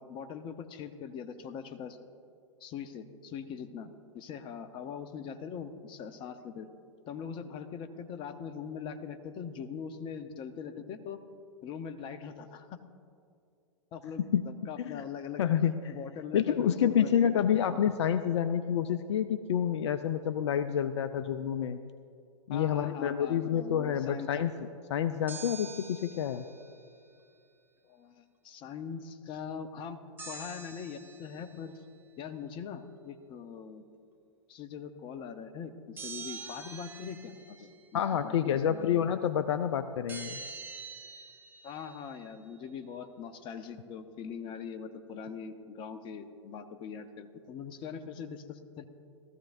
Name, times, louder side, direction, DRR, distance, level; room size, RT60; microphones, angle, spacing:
voice 1, 0.0-2.0 2.6-6.7 7.1-11.2 11.6-12.8 13.9-15.4 15.9-17.8 22.5-24.3 27.8-30.0 30.3-31.8 32.2-33.8 34.5-38.4 38.7-39.0 41.6-48.8, left 7 dB, 30° left, 9 dB, 0.9 m, -42 dB
voice 2, 15.4-15.9 16.3-21.8 22.5-26.5 37.9-40.4, left 9 dB, 65° left, 11 dB, 0.5 m, -28 dB
sound 1, 25.3-27.0 30.2-31.6 36.0-37.9 40.1-42.3, right 4 dB, 15° right, 0.9 m, -45 dB
18.5 x 14.0 x 2.6 m, 2.3 s
hypercardioid pair, 110°, 16 cm